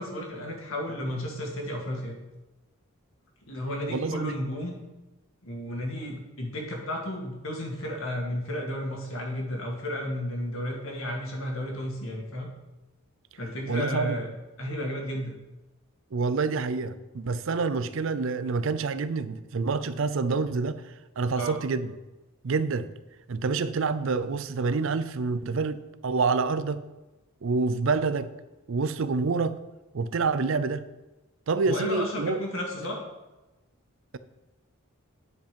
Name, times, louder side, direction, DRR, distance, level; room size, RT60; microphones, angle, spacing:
voice 1, 0.0-2.1 3.5-4.8 5.4-12.5 13.4-14.3 14.6-15.3 21.4-21.6 31.6-33.0, equal, 65° left, 0 dB, 2.0 m, -33 dB
voice 2, 3.9-4.4 13.7-14.2 16.1-20.8 21.2-22.0 22.4-22.9 23.3-26.8 27.4-28.3 28.7-29.6 29.9-30.9 31.5-32.4, right 4 dB, 60° right, 13 dB, 0.5 m, -27 dB
9.7 x 5.3 x 5.2 m, 1.1 s
head